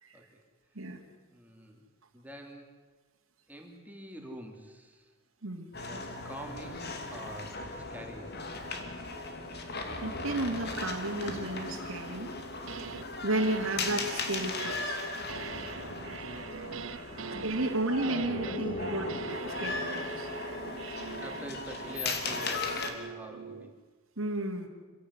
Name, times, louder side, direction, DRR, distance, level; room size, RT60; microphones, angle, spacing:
voice 1, 1.3-1.9 2.1-2.7 3.5-5.1 5.8-8.3 15.6-17.2 18.4-18.7 21.2-23.7, right 1 dB, 10° right, 2 dB, 3.0 m, -47 dB
sound 1, 5.7-22.9, left 3 dB, 55° left, 2.7 m, -37 dB
voice 2, 10.0-12.3 13.2-15.0 17.4-19.1 19.4-20.3 24.2-24.7, right 2 dB, 85° right, -4 dB, 2.7 m, -33 dB
sound 2, 12.4-13.1 13.4-23.8, right 6 dB, 65° right, 0.8 m, -44 dB
26.5 x 16.5 x 9.8 m, 1.4 s
head